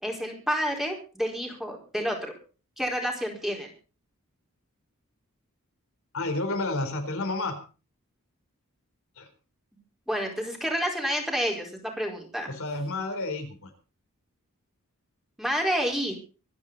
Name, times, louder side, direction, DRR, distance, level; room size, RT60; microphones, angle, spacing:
voice 1, 0.0-2.3 2.8-3.7 10.1-12.5 15.4-16.1, equal, ahead, 1 dB, 4.6 m, -29 dB
voice 2, 6.1-7.6 9.2-9.3 12.5-13.7, left 2 dB, 65° left, 5 dB, 4.0 m, -30 dB
25.0 x 10.5 x 4.1 m, 0.35 s
head